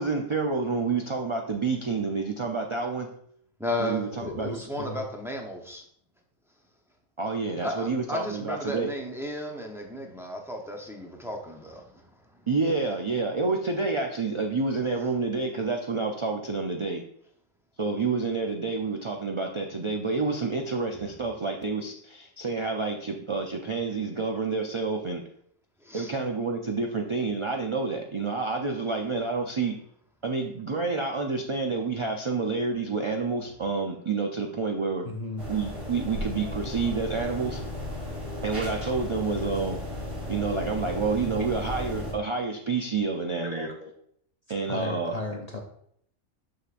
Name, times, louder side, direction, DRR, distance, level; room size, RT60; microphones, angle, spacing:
voice 1, 0.0-3.1 3.8-4.5 7.2-8.9 12.5-17.0 17.8-25.2 25.9-29.8 30.2-35.1 35.5-37.6 38.4-39.8 40.3-43.7 44.5-45.1, right 4 dB, 50° right, 2 dB, 0.3 m, -29 dB
voice 2, 3.6-5.8 7.6-12.1 20.9-21.1 25.8-26.1, left 1 dB, 5° right, 1 dB, 0.6 m, -34 dB
voice 3, 4.2-5.1 35.0-35.5 41.6-41.7 43.4-43.9 44.7-45.6, left 2 dB, 40° left, 2 dB, 0.6 m, -35 dB
sound 1, 35.4-42.1, left 1 dB, 80° right, 3.1 m, -35 dB
6.6 x 6.0 x 2.5 m, 0.67 s
omnidirectional pair, 1.3 m